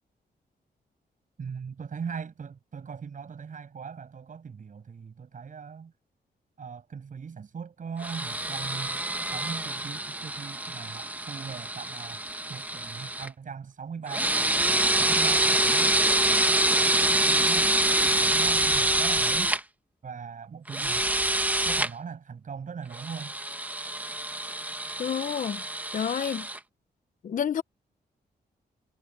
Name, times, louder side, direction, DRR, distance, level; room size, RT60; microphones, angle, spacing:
voice 1, 1.4-5.9 6.6-12.2 12.5-14.3 14.9-15.9 17.0-17.7 18.0-19.5 20.0-21.1 21.6-23.3, right 6 dB, 50° right, 7.6 m, -40 dB
sound 1, 8.0-13.3 14.1-19.6 20.7-21.9 22.9-26.6, right 1 dB, 10° right, 1.0 m, -26 dB
voice 2, 25.0-25.6 25.9-26.5 27.2-27.6, left 8 dB, 50° left, 0.6 m, -29 dB
wide cardioid pair, 150°, 17 cm